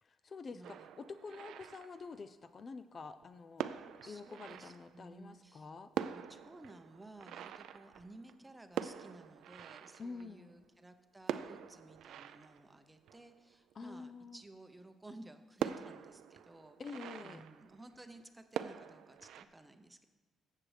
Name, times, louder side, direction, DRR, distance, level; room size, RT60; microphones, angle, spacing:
voice 1, 0.0-5.9 10.0-10.5 13.8-14.4 16.8-17.4, left 4 dB, 40° left, 10 dB, 0.4 m, -48 dB
voice 2, 0.5-0.9 4.0-5.7 6.1-20.1, right 2 dB, 15° right, 8 dB, 0.7 m, -56 dB
sound 1, 0.6-2.5 3.2-3.3 3.6-5.3 5.6-5.7 5.9-10.7 11.2-13.9 14.4-14.5 14.8-14.9 15.6-18.2 18.5-19.4, right 10 dB, 80° right, 0.4 m, -44 dB
14.0 x 7.6 x 3.3 m, 1.2 s
cardioid pair, 90°, 0 cm